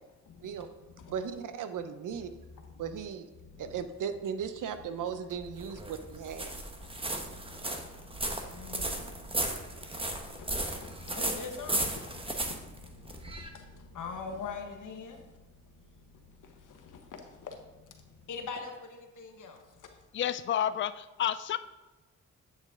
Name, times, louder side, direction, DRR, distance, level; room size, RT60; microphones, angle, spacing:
voice 1, 0.2-1.3 2.1-2.3 2.5-2.9 3.4-3.8 5.7-5.8 6.8-20.0, left 5 dB, 75° left, 4 dB, 1.3 m, -45 dB
voice 2, 1.1-2.3 2.8-3.3 3.6-6.5, right 7 dB, 80° right, 10 dB, 0.7 m, -37 dB
sound 1, 5.3-13.5, right 2 dB, 15° right, 1.1 m, -35 dB
voice 3, 20.1-21.6, left 10 dB, 40° left, 13 dB, 0.4 m, -30 dB
9.1 x 6.5 x 3.7 m, 1.1 s
cardioid pair, 70°, 31 cm